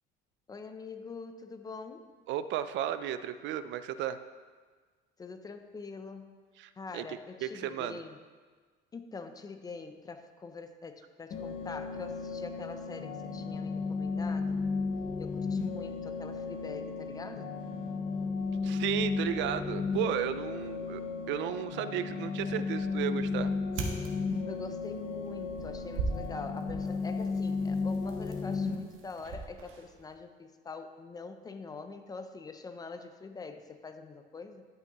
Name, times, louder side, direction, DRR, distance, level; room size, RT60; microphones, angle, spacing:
voice 1, 0.5-2.1 5.2-6.4 6.8-8.2 8.9-14.6 15.2-17.5 24.4-34.7, left 4 dB, 20° left, 8 dB, 0.4 m, -44 dB
voice 2, 2.3-4.2 6.6-7.0 7.4-8.0 18.6-21.0 21.3-23.5, right 10 dB, 65° right, 12 dB, 0.4 m, -34 dB
sound 1, 11.3-28.8, left 4 dB, 40° left, 0.8 m, -34 dB
sound 2, 22.1-30.1, right 3 dB, 90° right, 1.4 m, -42 dB
11.5 x 8.8 x 3.0 m, 1.5 s
cardioid pair, 170°, 20 cm